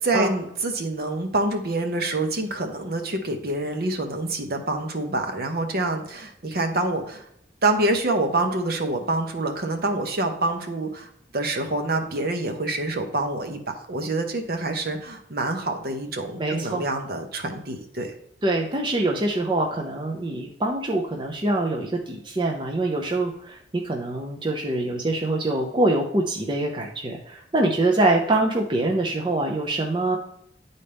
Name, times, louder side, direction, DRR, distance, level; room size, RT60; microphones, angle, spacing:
voice 1, 0.0-7.3 7.6-13.6 13.9-18.1, right 2 dB, 55° right, 4 dB, 0.9 m, -26 dB
voice 2, 16.4-16.8 18.4-30.2, right 2 dB, 25° right, 0 dB, 0.6 m, -24 dB
9.9 x 4.1 x 3.4 m, 0.73 s
head